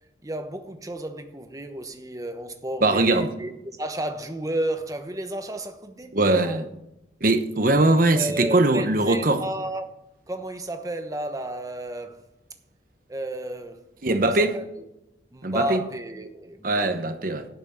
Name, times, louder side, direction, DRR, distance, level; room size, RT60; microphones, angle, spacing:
voice 1, 0.2-6.6 8.1-9.9 10.3-12.3 13.1-14.7 15.3-17.1, right 1 dB, 20° right, 1.0 m, -32 dB
voice 2, 2.8-3.3 6.1-6.6 7.2-9.4 14.0-14.6 15.4-15.8 16.6-17.5, right 2 dB, 50° right, 1.1 m, -21 dB
11.5 x 6.1 x 7.5 m
head